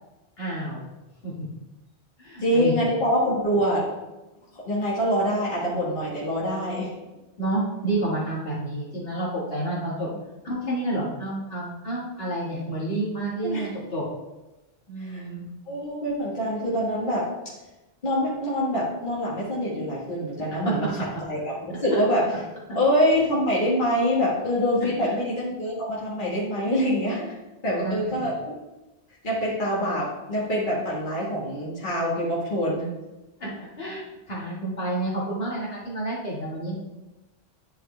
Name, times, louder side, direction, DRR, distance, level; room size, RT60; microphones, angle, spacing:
voice 1, 0.4-0.8 1.2-1.5 2.2-2.8 7.4-10.1 10.4-14.0 14.9-15.4 20.7-20.8 21.9-22.0 25.0-25.2 27.8-28.1 33.4-36.7, right 1 dB, 65° left, -5 dB, 2.2 m, -29 dB
voice 2, 2.4-3.9 4.6-6.9 10.1-10.2 13.4-13.7 15.0-15.2 15.7-17.3 18.0-20.9 21.3-22.3 22.7-27.3 27.6-28.5 29.2-32.9, equal, 50° left, -7 dB, 1.8 m, -25 dB
10.5 x 4.8 x 3.3 m, 1.1 s
omnidirectional pair, 1.1 m